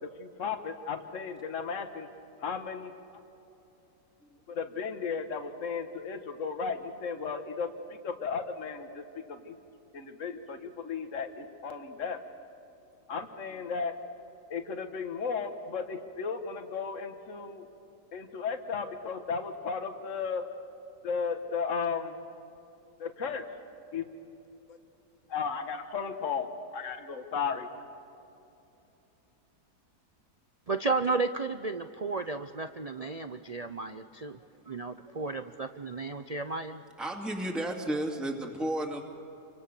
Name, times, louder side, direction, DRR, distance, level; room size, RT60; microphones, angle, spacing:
voice 1, 0.0-2.1 2.4-3.2 4.5-9.0 9.3-9.6 9.9-12.2 13.1-13.9 14.5-17.7 18.1-20.4 21.0-22.2 23.0-23.4 23.9-24.0 24.7-24.8 25.3-27.7, left 5 dB, 50° left, 7 dB, 1.8 m, -35 dB
voice 2, 30.7-34.4 34.7-36.8, right 3 dB, 75° right, 9 dB, 0.3 m, -33 dB
voice 3, 37.0-39.0, right 1 dB, ahead, 1 dB, 2.3 m, -32 dB
29.0 x 25.5 x 6.9 m, 2.9 s
omnidirectional pair, 1.8 m